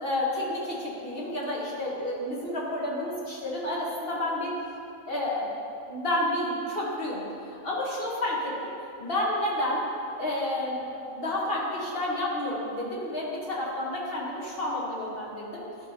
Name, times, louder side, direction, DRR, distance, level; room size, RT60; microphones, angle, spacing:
voice 1, 0.0-4.5 5.1-5.5 5.9-7.2 7.6-8.7 9.0-9.8 10.2-15.6, left 1 dB, 45° left, -4 dB, 1.4 m, -30 dB
11.5 x 5.3 x 2.8 m, 2.5 s
omnidirectional pair, 1.5 m